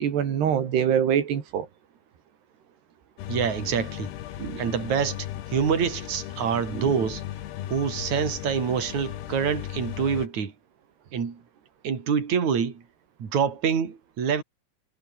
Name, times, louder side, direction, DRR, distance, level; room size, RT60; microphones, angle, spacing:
voice 1, 0.0-1.7 4.4-4.6 6.7-6.9, right 8 dB, 85° right, 4.9 m, -24 dB
sound 1, 3.2-10.3, left 12 dB, 90° left, 3.7 m, -36 dB
voice 2, 3.3-4.1 4.6-5.2 5.5-7.2 7.7-10.5 11.1-11.4 11.8-12.8 13.2-14.4, right 7 dB, 45° right, 4.8 m, -26 dB
omnidirectional pair, 4.6 m